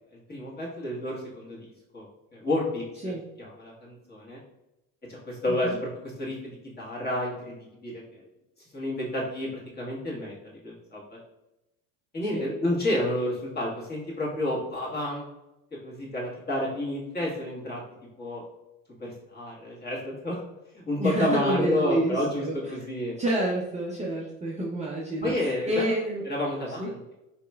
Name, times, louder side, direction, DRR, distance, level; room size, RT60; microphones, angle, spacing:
voice 1, 0.3-2.1 2.3-3.1 3.4-4.4 5.1-7.6 7.8-8.3 8.7-11.0 12.1-15.2 15.8-17.8 18.2-18.4 19.0-20.4 20.9-23.1 25.2-25.9 26.3-27.0, left 1 dB, 25° left, -4 dB, 1.5 m, -30 dB
voice 2, 21.0-22.6 23.2-26.2 26.8-26.9, right 1 dB, 15° right, -4 dB, 0.6 m, -28 dB
4.2 x 2.9 x 2.3 m, 0.93 s
supercardioid pair, 85°, 40 cm